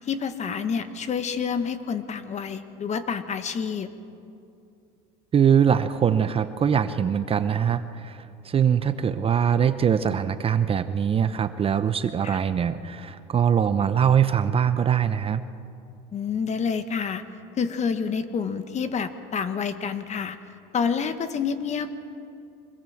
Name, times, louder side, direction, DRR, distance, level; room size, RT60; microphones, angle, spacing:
voice 1, 0.0-3.9 12.2-12.4 16.1-17.2 17.6-20.4 20.7-21.9, left 6 dB, 35° left, 11 dB, 1.4 m, -28 dB
voice 2, 5.3-15.4, right 8 dB, 30° right, 11 dB, 0.8 m, -22 dB
25.0 x 20.5 x 7.2 m, 2.6 s
supercardioid pair, 120°, 20 cm